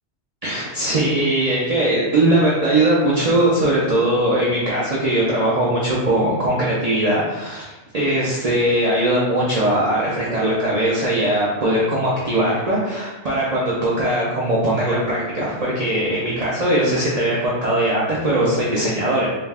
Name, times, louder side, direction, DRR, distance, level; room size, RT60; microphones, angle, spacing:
voice 1, 0.4-19.3, right 1 dB, 50° right, -6 dB, 0.4 m, -20 dB
2.4 x 2.3 x 3.3 m, 1.1 s
omnidirectional pair, 1.2 m